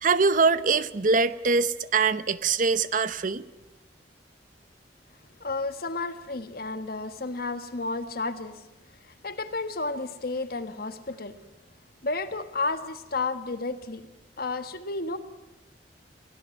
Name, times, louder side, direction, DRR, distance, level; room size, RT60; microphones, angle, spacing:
voice 1, 0.0-3.4, right 4 dB, 50° right, 14 dB, 0.8 m, -23 dB
voice 2, 5.4-8.6 9.0-11.3 12.0-14.0 14.4-15.2, left 3 dB, 55° left, 9 dB, 1.6 m, -32 dB
24.0 x 17.0 x 9.1 m, 0.99 s
head